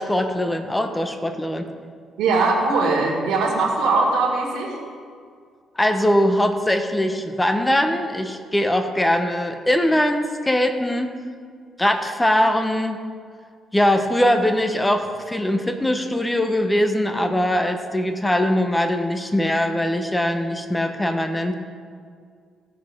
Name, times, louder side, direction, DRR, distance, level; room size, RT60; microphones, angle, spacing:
voice 1, 0.0-1.7 5.8-11.2 11.8-13.0 13.7-21.5, left 1 dB, 10° left, 6 dB, 0.9 m, -21 dB
voice 2, 2.2-4.8, right 3 dB, 90° right, -4 dB, 2.1 m, -20 dB
17.5 x 6.2 x 3.7 m, 2.1 s
cardioid pair, 90°, 0 cm